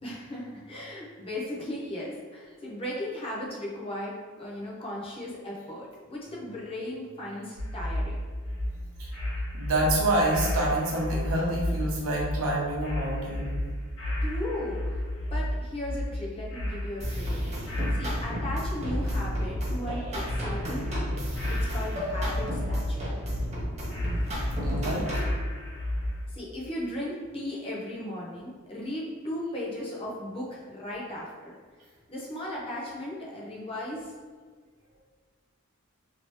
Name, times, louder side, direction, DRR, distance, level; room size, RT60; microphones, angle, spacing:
voice 1, 0.0-8.2 14.2-17.6 17.9-21.2 21.5-23.2 26.3-31.5 32.1-34.1, left 1 dB, 25° left, -5 dB, 0.7 m, -36 dB
sound 1, 7.6-26.2, left 1 dB, 70° left, 1.0 m, -32 dB
voice 2, 9.5-13.6 24.6-25.3, right 1 dB, 70° right, -3 dB, 0.8 m, -27 dB
sound 2, 17.0-25.4, equal, 30° right, 0.8 m, -34 dB
2.9 x 2.8 x 3.1 m, 1.5 s
head